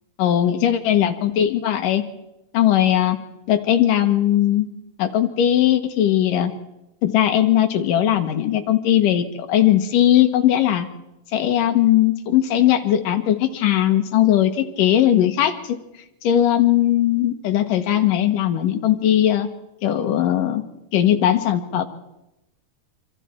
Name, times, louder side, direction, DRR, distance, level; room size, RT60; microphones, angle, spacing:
voice 1, 0.2-2.0 2.5-3.2 3.5-4.7 5.0-6.5 7.0-10.9 11.3-15.8 16.2-19.5 19.8-20.6 20.9-21.9, left 11 dB, 75° left, 7 dB, 2.9 m, -19 dB
26.5 x 25.5 x 4.5 m, 0.90 s
omnidirectional pair, 4.0 m